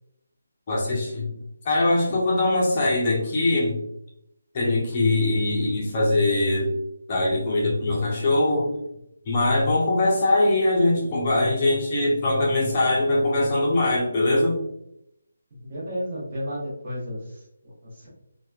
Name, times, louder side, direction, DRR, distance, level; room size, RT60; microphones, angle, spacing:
voice 1, 0.7-1.3 1.6-3.8 4.5-6.7 7.1-8.7 9.3-14.6, left 2 dB, 25° left, -4 dB, 0.6 m, -22 dB
voice 2, 15.6-18.1, equal, 30° right, -6 dB, 1.0 m, -33 dB
2.9 x 2.2 x 2.3 m, 0.79 s
hypercardioid pair, 170°, 0 cm